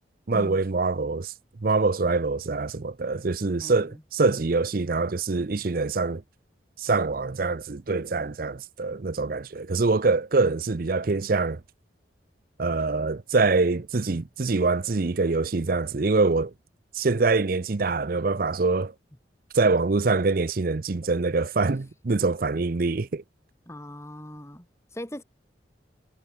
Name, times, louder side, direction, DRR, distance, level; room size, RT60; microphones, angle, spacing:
voice 1, 0.3-1.3 1.6-6.2 6.8-11.6 12.6-16.5 16.9-18.9 19.5-23.2, right 3 dB, 50° right, 0.6 m, -24 dB
voice 2, 3.6-4.0 23.7-24.7 24.9-25.2, equal, 15° left, 2.8 m, -39 dB
head